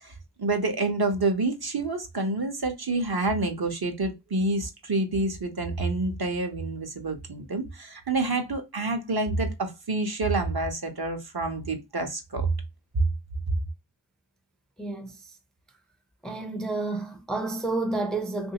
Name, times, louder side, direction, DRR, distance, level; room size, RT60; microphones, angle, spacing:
voice 1, 0.0-12.5, right 2 dB, 55° right, 1.0 m, -28 dB
voice 2, 14.8-15.2 16.2-18.5, right 2 dB, ahead, 0.5 m, -30 dB
3.1 x 2.7 x 2.8 m
wide cardioid pair, 65°, 45 cm